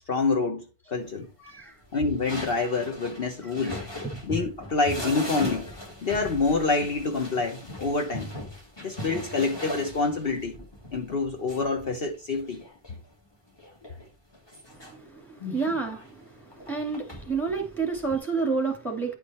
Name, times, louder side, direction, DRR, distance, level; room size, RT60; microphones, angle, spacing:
voice 1, 0.1-0.6 0.9-1.3 1.9-3.8 4.2-8.3 8.8-10.6 10.9-12.6, left 3 dB, 55° left, 1.2 m, -27 dB
voice 2, 1.4-1.8 3.4-3.8 14.7-19.1, right 4 dB, ahead, 2.3 m, -30 dB
sound 1, 1.9-13.0 13.6-14.9 15.4-18.2, left 1 dB, 20° left, 1.8 m, -39 dB
10.0 x 5.1 x 4.3 m
omnidirectional pair, 1.2 m